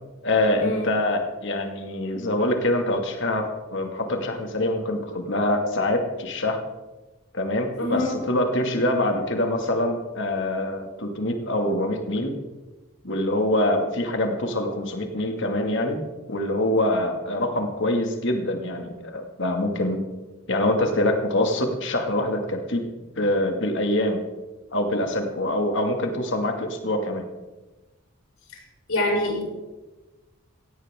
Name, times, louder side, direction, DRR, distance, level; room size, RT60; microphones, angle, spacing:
voice 1, 0.2-6.6 7.3-12.3 13.0-16.0 16.3-20.0 20.5-22.8 23.1-24.2 24.7-27.2, left 1 dB, 55° left, 4 dB, 2.3 m, -25 dB
voice 2, 7.8-8.1 28.9-29.4, left 1 dB, 75° left, -2 dB, 6.3 m, -24 dB
17.5 x 15.5 x 3.7 m, 1.2 s
head